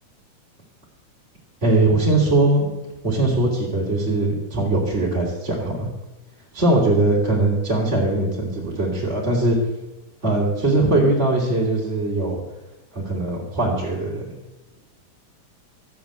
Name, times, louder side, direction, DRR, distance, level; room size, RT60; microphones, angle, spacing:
voice 1, 1.6-2.7 3.0-5.9 6.5-9.6 10.2-12.4 12.9-14.3, right 2 dB, 20° right, -7 dB, 3.3 m, -20 dB
14.5 x 9.0 x 8.0 m, 1.0 s
omnidirectional pair, 3.6 m